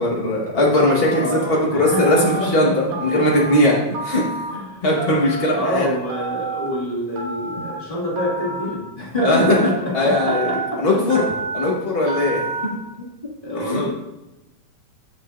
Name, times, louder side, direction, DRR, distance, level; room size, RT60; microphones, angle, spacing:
voice 1, 0.0-4.4 4.8-5.9 9.2-9.6 9.9-11.2 11.5-12.4 13.6-13.8, left 1 dB, 75° left, -3 dB, 0.5 m, -19 dB
Telephone, 0.9-1.3 1.9-2.4 2.9-3.5 3.9-4.5 5.0-5.5 6.1-6.7 7.2-7.7 8.2-8.7 9.2-9.7 10.1-10.7 11.1-11.7 12.1-12.7, right 4 dB, 55° right, 1.8 m, -28 dB
voice 2, 1.2-2.7 3.4-3.5 4.5-4.9 5.5-11.2 12.9-13.1 13.4-13.9, equal, 20° left, -5 dB, 1.6 m, -27 dB
14.0 x 6.4 x 2.5 m, 0.97 s
omnidirectional pair, 3.5 m